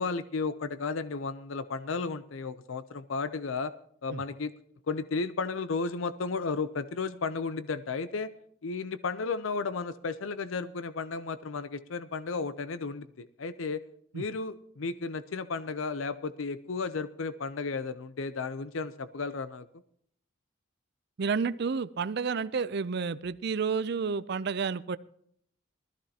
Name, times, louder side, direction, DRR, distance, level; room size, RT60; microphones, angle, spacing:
voice 1, 0.0-3.7 4.0-4.5 4.9-8.3 8.6-13.8 14.1-19.7, left 4 dB, 75° left, 13 dB, 0.6 m, -33 dB
voice 2, 21.2-25.0, right 5 dB, 55° right, 16 dB, 0.5 m, -30 dB
19.5 x 14.0 x 2.9 m, 0.65 s
head